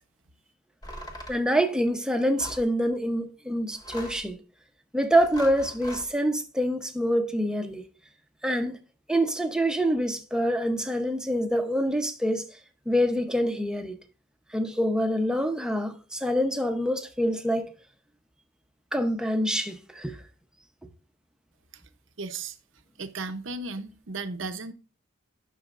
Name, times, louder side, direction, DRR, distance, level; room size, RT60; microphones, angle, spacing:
sound 1, 0.8-1.4 2.4-2.7 3.7-4.3 5.1-6.1, equal, 20° left, 1.5 m, -41 dB
voice 1, 1.3-4.4 4.9-7.9 8.4-8.8 9.1-12.5 12.9-14.0 14.5-17.7 18.9-20.2, equal, 5° right, 0.8 m, -26 dB
voice 2, 22.2-22.6 23.0-24.7, right 3 dB, 65° right, 0.8 m, -35 dB
11.0 x 6.3 x 2.5 m
head